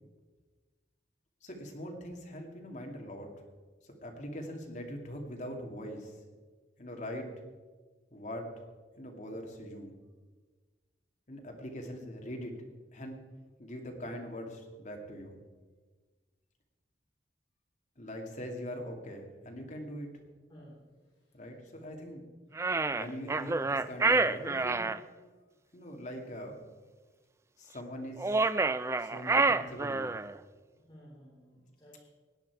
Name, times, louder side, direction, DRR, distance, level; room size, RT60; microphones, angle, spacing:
voice 1, 1.4-3.3 3.8-6.2 6.8-7.3 8.1-8.5 9.0-9.9 11.3-12.5 12.9-13.2 13.6-15.4 18.0-20.1 21.3-22.2 22.9-24.9 25.7-26.7 27.6-28.4 29.0-30.2, equal, 45° left, 2 dB, 2.2 m, -42 dB
voice 2, 20.5-21.7 25.4-25.5 29.4-29.6 30.7-32.0, equal, 25° left, -8 dB, 4.1 m, -57 dB
sound 1, 22.6-25.0 28.2-30.3, right 3 dB, 15° right, 0.3 m, -28 dB
17.0 x 10.0 x 4.7 m, 1.4 s
head